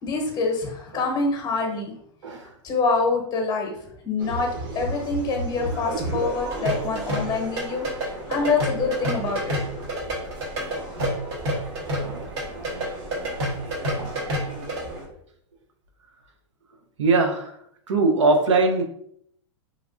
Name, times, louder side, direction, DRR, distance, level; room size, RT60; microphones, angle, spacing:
voice 1, 0.0-1.9 2.6-3.8 4.0-7.9 8.3-9.6, left 4 dB, 30° left, 1 dB, 0.9 m, -25 dB
voice 2, 2.2-2.5 7.7-7.8 8.4-8.5 11.4-11.6 12.0-12.3 17.0-17.6 17.9-18.8, right 3 dB, 85° right, 4 dB, 0.6 m, -22 dB
sound 1, 4.2-15.1, right 1 dB, 30° right, 0.9 m, -35 dB
sound 2, 6.5-14.8, equal, 60° right, 1.1 m, -28 dB
3.2 x 2.3 x 2.4 m, 0.70 s
hypercardioid pair, 120°, 15 cm